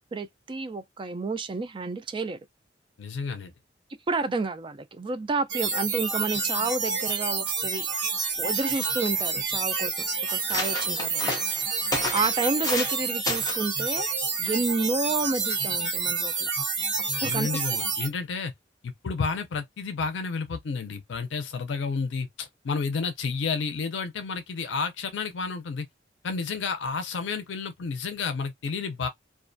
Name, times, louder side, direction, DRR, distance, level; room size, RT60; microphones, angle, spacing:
voice 1, 0.0-2.4 4.1-8.0 8.4-11.4 11.8-14.1 14.4-16.5 17.2-17.7, right 3 dB, 25° right, 0.3 m, -30 dB
voice 2, 3.0-3.5 17.2-18.5 18.8-25.9 26.2-29.1, left 5 dB, 80° left, 0.4 m, -31 dB
sound 1, 5.5-18.1, right 4 dB, 75° right, 1.1 m, -28 dB
sound 2, 8.4-8.5 8.7-9.3 9.9-10.0 10.3-13.0 13.3-13.7 14.4-14.7, left 2 dB, 20° left, 0.7 m, -32 dB
2.4 x 2.1 x 2.5 m
head